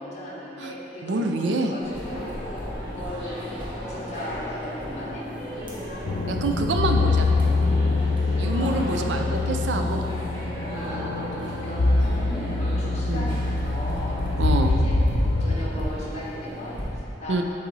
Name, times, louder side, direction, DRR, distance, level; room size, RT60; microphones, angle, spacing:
voice 1, 0.0-5.3 7.6-8.1 8.4-9.1 9.7-10.1 10.5-15.0 15.4-17.4, left 1 dB, 40° left, -5 dB, 1.3 m, -37 dB
voice 2, 1.0-1.7 6.3-7.3 8.4-10.0 10.9-11.1 13.1-13.3 14.4-14.7 17.3-17.4, right 3 dB, 75° right, 4 dB, 0.5 m, -26 dB
sound 1, 1.8-16.9, equal, 25° right, 1.3 m, -35 dB
sound 2, 6.0-15.6, left 3 dB, 80° left, 0.5 m, -24 dB
7.5 x 4.1 x 4.0 m, 2.9 s
head